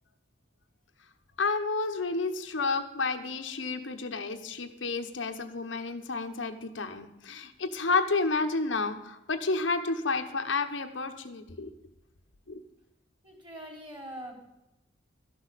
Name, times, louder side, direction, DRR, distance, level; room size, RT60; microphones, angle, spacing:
voice 1, 1.4-11.7 12.5-12.6, left 3 dB, 80° left, 5 dB, 1.1 m, -30 dB
voice 2, 13.2-14.4, right 1 dB, 25° right, -1 dB, 3.5 m, -43 dB
13.0 x 6.2 x 8.3 m, 0.93 s
head